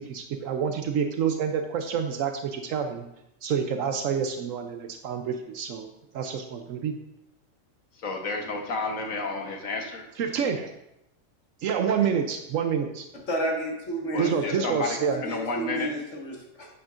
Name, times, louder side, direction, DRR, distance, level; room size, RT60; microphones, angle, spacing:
voice 1, 0.0-3.0 3.4-5.9 6.1-6.9 10.2-10.7 11.6-13.1 14.2-15.2, right 7 dB, 80° right, 6 dB, 1.0 m, -28 dB
voice 2, 8.0-10.1 14.1-15.0 15.2-15.9, left 3 dB, 80° left, 2 dB, 1.6 m, -31 dB
voice 3, 13.3-14.7 15.0-16.7, right 1 dB, 60° left, 0 dB, 1.9 m, -31 dB
9.7 x 8.8 x 2.5 m, 0.85 s
omnidirectional pair, 1.4 m